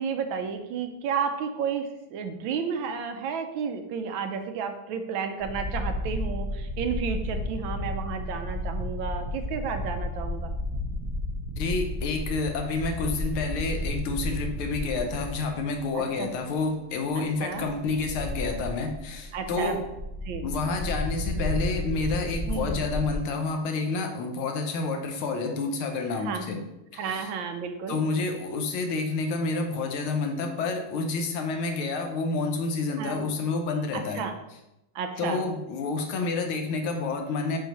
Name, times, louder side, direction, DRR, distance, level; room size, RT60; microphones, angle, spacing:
voice 1, 0.0-10.5 15.9-16.3 17.1-17.7 19.3-19.8 20.2-20.5 22.5-22.8 26.2-26.4 27.0-28.0 33.0-33.2 33.9-34.3 34.9-35.4, right 6 dB, 75° right, 7 dB, 1.3 m, -32 dB
sound 1, 5.4-16.0 16.3-16.4 17.5-23.2, left 1 dB, 45° right, 1.1 m, -32 dB
voice 2, 11.6-19.9 20.4-26.6 26.9-27.3 27.9-34.3 35.2-37.6, left 3 dB, 90° left, 4 dB, 1.7 m, -29 dB
7.1 x 4.8 x 3.0 m, 0.93 s
omnidirectional pair, 2.3 m